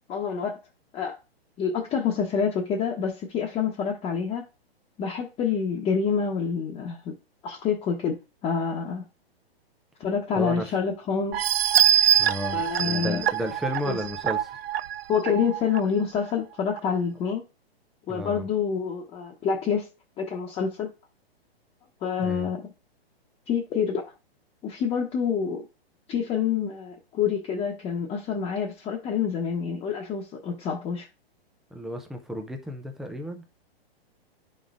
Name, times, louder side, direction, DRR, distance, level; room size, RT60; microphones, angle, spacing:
voice 1, 0.1-0.6 0.9-1.2 1.6-4.5 5.0-7.2 7.4-8.2 8.4-9.0 10.0-11.5 12.5-13.2 13.9-14.0 15.1-17.4 18.1-19.9 20.2-20.9 22.0-22.6 23.5-24.0 24.6-25.6 26.1-31.1, left 6 dB, 20° left, 1.0 m, -27 dB
sound 1, 11.3-15.8 16.3-16.4 16.8-16.9, right 10 dB, 70° right, 0.5 m, -24 dB
voice 2, 12.2-14.6 18.1-18.5 22.2-22.5 31.7-33.5, equal, ahead, 0.4 m, -33 dB
10.5 x 5.3 x 2.5 m
hypercardioid pair, 145°, 31 cm